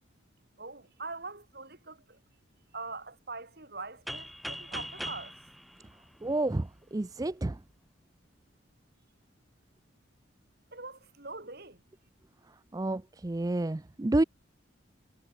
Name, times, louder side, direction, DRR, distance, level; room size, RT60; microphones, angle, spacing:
voice 1, 0.6-2.2 2.7-5.4 10.7-11.8, right 3 dB, 50° right, 6.2 m, -43 dB
sound 1, 4.1-6.8, equal, ahead, 4.2 m, -41 dB
voice 2, 6.2-7.6 12.7-14.2, right 2 dB, 20° right, 0.4 m, -29 dB
head